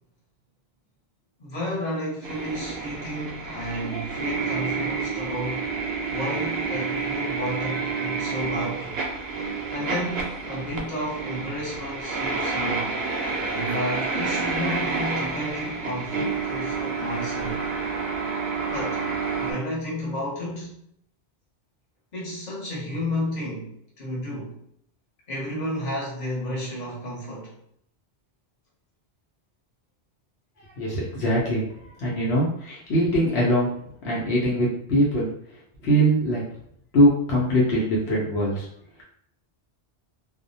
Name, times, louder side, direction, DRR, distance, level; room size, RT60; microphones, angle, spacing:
voice 1, 1.4-5.7 6.1-9.0 9.7-12.9 13.4-17.6 18.7-19.0 19.4-20.8 22.1-24.6 25.3-27.5, left 1 dB, 45° left, -5 dB, 1.0 m, -32 dB
sound 1, 2.2-19.5, right 4 dB, 70° right, 0.8 m, -29 dB
voice 2, 30.8-33.7 34.0-35.3 35.8-36.4 36.9-38.7, equal, 75° left, -5 dB, 0.9 m, -22 dB
2.3 x 2.1 x 2.6 m, 0.70 s
omnidirectional pair, 1.1 m